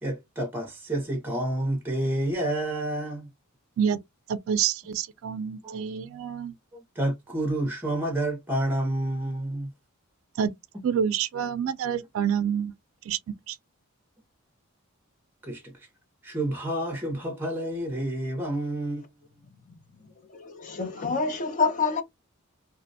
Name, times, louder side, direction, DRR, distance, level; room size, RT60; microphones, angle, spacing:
voice 1, 0.0-3.3 5.6-5.8 6.7-9.7 15.4-15.9 16.2-19.0, right 1 dB, 10° right, 0.6 m, -29 dB
voice 2, 4.3-6.5 10.4-10.5 10.8-12.7 13.1-13.2 13.5-13.6, right 8 dB, 65° right, 0.3 m, -27 dB
voice 3, 20.3-22.0, left 4 dB, 35° left, 0.5 m, -27 dB
2.4 x 2.1 x 2.6 m
head